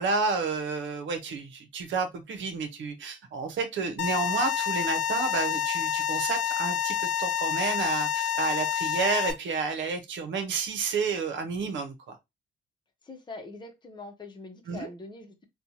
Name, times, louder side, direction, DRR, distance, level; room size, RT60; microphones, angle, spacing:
voice 1, 0.0-12.2 14.7-14.9, right 4 dB, 70° right, 0.9 m, -30 dB
sound 1, 4.0-9.3, left 10 dB, 80° left, 0.9 m, -28 dB
voice 2, 13.0-15.4, left 3 dB, 20° left, 0.9 m, -43 dB
4.3 x 2.3 x 2.8 m
cardioid pair, 90°, 20 cm